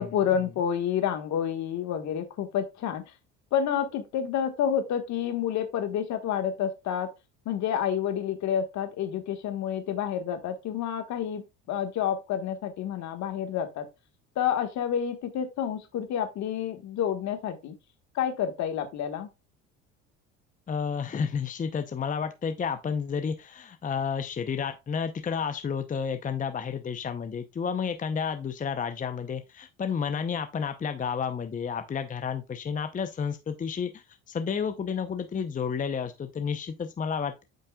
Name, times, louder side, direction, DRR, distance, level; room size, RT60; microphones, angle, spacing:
voice 1, 0.0-3.0 3.5-7.1 7.4-13.9 14.3-17.7 18.1-19.3, left 9 dB, 60° left, 1.6 m, -29 dB
voice 2, 20.7-37.4, left 6 dB, 25° left, 0.7 m, -31 dB
8.7 x 5.4 x 2.3 m
supercardioid pair, 95°, 32 cm